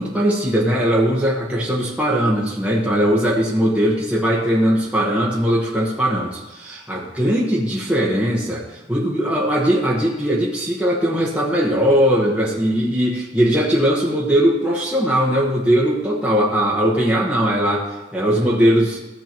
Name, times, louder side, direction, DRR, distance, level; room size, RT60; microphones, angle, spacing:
voice 1, 0.0-19.0, equal, 5° right, -5 dB, 1.2 m, -19 dB
15.0 x 8.1 x 3.0 m, 1.1 s
head